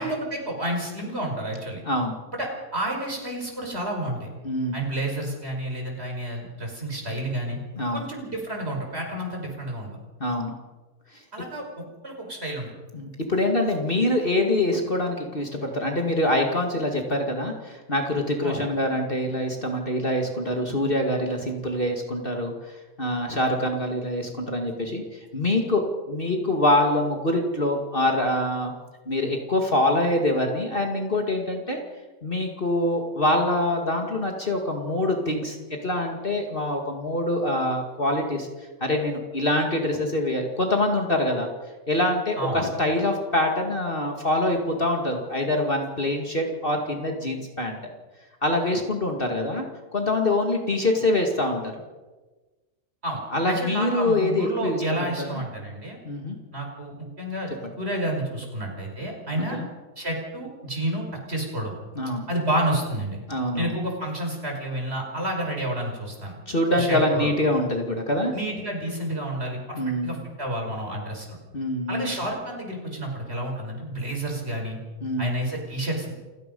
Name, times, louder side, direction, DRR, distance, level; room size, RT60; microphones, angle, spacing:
voice 1, 0.0-1.8 2.4-4.3 4.7-7.6 7.9-10.0 11.3-11.6 12.0-12.7 18.4-18.6 42.4-42.7 53.0-53.2 53.5-56.0 56.5-57.5 57.8-59.6 60.0-61.7 62.3-63.2 63.6-66.3 66.7-67.3 68.3-71.4 71.9-74.8 75.2-76.1, right 1 dB, 40° right, 1 dB, 5.6 m, -30 dB
voice 2, 4.4-4.8 7.8-8.1 10.2-10.5 12.9-22.5 23.0-28.7 29.1-31.8 32.2-35.6 35.8-38.5 38.8-41.5 41.9-47.8 48.4-49.7 49.9-51.6 53.3-54.8 55.2-55.4 56.1-56.4 59.5-59.7 62.0-62.3 63.3-63.7 66.5-68.3 69.7-70.2 71.5-72.1 75.0-75.3, left 1 dB, 35° left, 2 dB, 2.4 m, -25 dB
28.5 x 17.0 x 5.5 m, 1.2 s
omnidirectional pair, 1.6 m